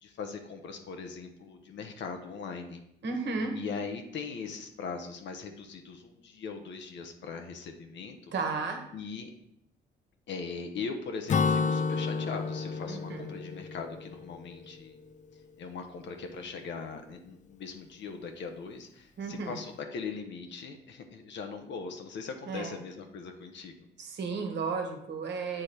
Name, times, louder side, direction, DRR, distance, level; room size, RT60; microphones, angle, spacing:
voice 1, 0.0-2.8 3.5-8.3 8.9-9.3 10.3-15.0 15.6-23.7, left 5 dB, 65° left, 5 dB, 0.8 m, -40 dB
voice 2, 3.0-3.5 8.3-8.8 12.9-13.3 19.2-19.6 22.4-22.8 24.0-25.6, right 4 dB, 60° right, 3 dB, 1.3 m, -33 dB
Acoustic guitar / Strum, 11.3-14.9, left 5 dB, 40° left, 0.4 m, -31 dB
8.6 x 3.3 x 4.2 m, 0.76 s
cardioid pair, 90°, 20 cm